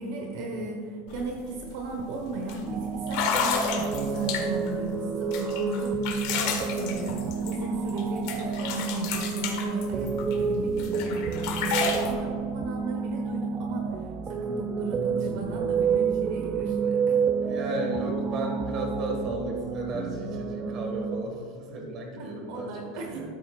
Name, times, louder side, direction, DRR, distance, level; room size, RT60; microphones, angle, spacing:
voice 1, 0.0-13.9 14.3-17.2 17.4-17.5 22.2-23.3, right 3 dB, 60° right, 1 dB, 1.2 m, -35 dB
sound 1, 1.1-1.2 1.6-1.9 2.5-2.6 3.1-4.7 5.3-8.0 8.3-10.4 10.8-12.1, left 5 dB, 60° left, 1.7 m, -30 dB
sound 2, 2.7-21.2, right 5 dB, 20° right, 0.3 m, -30 dB
voice 2, 17.4-22.9 23.1-23.3, right 1 dB, 35° right, 1 dB, 1.8 m, -34 dB
13.5 x 8.4 x 2.5 m, 2.4 s
supercardioid pair, 160°, 0 cm